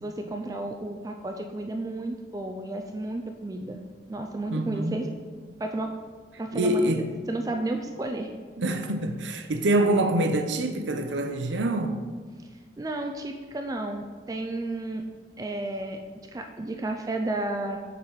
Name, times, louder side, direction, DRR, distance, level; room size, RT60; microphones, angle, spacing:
voice 1, 0.0-3.8 4.1-5.1 5.6-5.9 6.4-6.9 7.3-8.3 12.8-15.0 15.4-16.0 16.3-17.8, right 2 dB, 20° right, 0.3 m, -32 dB
voice 2, 4.5-5.0 6.5-7.1 8.6-12.0, right 1 dB, 85° right, 0.6 m, -25 dB
7.3 x 4.0 x 4.7 m
head